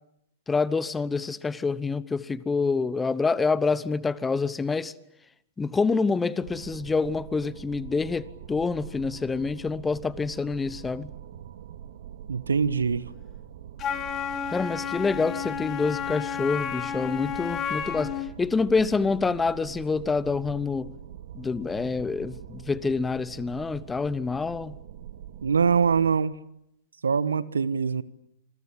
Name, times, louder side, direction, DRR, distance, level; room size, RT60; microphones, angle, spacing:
voice 1, 0.5-4.9 5.6-11.1 14.5-20.9 21.3-24.8, left 4 dB, 10° left, 1.1 m, -27 dB
sound 1, 6.4-26.1, right 10 dB, 60° right, 2.6 m, -44 dB
voice 2, 12.3-13.0 25.4-26.4 27.0-28.0, right 6 dB, 80° right, 1.2 m, -23 dB
Wind instrument woodwind instrument, 13.8-18.3, left 8 dB, 25° left, 2.8 m, -31 dB
27.5 x 22.5 x 8.6 m
figure-of-eight pair, 110°, 0 cm